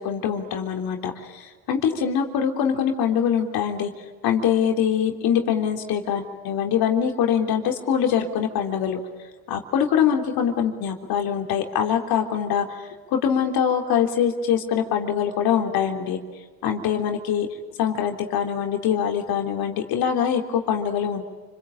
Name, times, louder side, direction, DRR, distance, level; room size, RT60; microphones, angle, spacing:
voice 1, 0.0-3.9 4.2-9.0 9.5-12.7 13.1-16.2 16.6-17.5 17.8-21.2, left 8 dB, 60° left, 3 dB, 3.6 m, -23 dB
29.5 x 22.5 x 8.8 m, 1.4 s
supercardioid pair, 95°, 41 cm